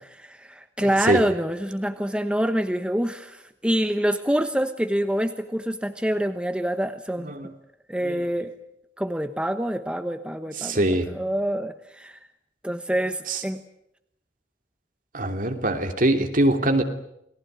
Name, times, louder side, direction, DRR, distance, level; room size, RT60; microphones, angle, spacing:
voice 1, 0.0-7.3 7.9-8.5 9.0-10.8 11.1-12.2 12.6-13.6, equal, 5° right, 8 dB, 1.1 m, -26 dB
voice 2, 8.0-8.3 10.6-11.1 13.3-13.4 15.1-16.8, right 1 dB, 50° right, 5 dB, 3.0 m, -23 dB
29.0 x 19.5 x 9.4 m, 0.81 s
head